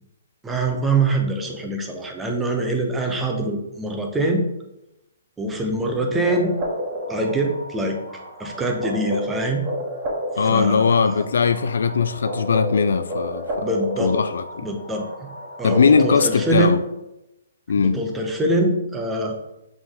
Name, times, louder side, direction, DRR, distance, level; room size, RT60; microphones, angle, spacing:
voice 1, 0.4-4.4 5.4-6.6 7.1-8.0 8.4-9.6 10.4-11.2 13.6-14.1 14.6-15.3 15.6-16.8 17.8-19.5, right 2 dB, 10° right, 0.9 m, -24 dB
sound 1, 6.2-16.5, equal, 25° right, 1.6 m, -31 dB
voice 2, 10.4-13.7 14.0-14.7 15.6-16.8 17.7-18.0, left 5 dB, 60° left, 0.4 m, -19 dB
7.2 x 4.4 x 3.7 m
figure-of-eight pair, 125°, 0 cm